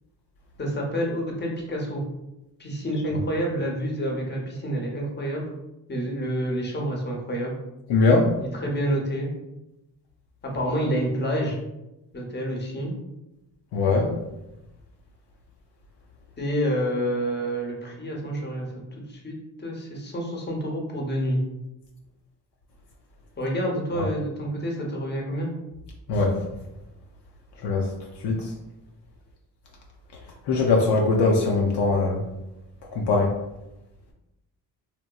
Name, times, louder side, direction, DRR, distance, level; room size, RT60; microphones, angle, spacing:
voice 1, 0.6-2.0 2.6-5.4 5.9-7.5 8.4-9.3 10.4-11.6 12.1-12.9 16.4-18.7 19.1-21.4 23.4-25.5, equal, 25° left, -1 dB, 0.8 m, -28 dB
voice 2, 7.9-8.3 13.7-14.1 24.0-24.1 26.1-26.4 27.6-27.9 28.2-28.5 30.5-32.2 32.9-33.3, left 3 dB, 65° left, 0 dB, 0.5 m, -21 dB
2.9 x 2.1 x 2.2 m, 0.95 s
supercardioid pair, 55°, 45 cm